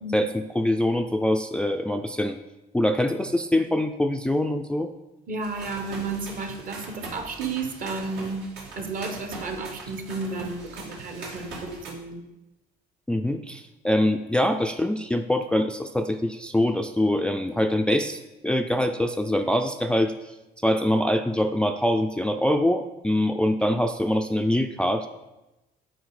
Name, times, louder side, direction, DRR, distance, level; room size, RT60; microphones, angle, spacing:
voice 1, 0.1-2.4 2.7-4.9 13.1-20.1 20.6-25.1, left 1 dB, 5° left, 7 dB, 0.3 m, -24 dB
voice 2, 5.3-8.5 8.8-12.2, right 3 dB, 55° right, 6 dB, 1.1 m, -32 dB
sound 1, 5.4-11.9, right 2 dB, 85° right, 1.7 m, -41 dB
8.0 x 4.3 x 4.8 m, 1.0 s
cardioid pair, 110°, 17 cm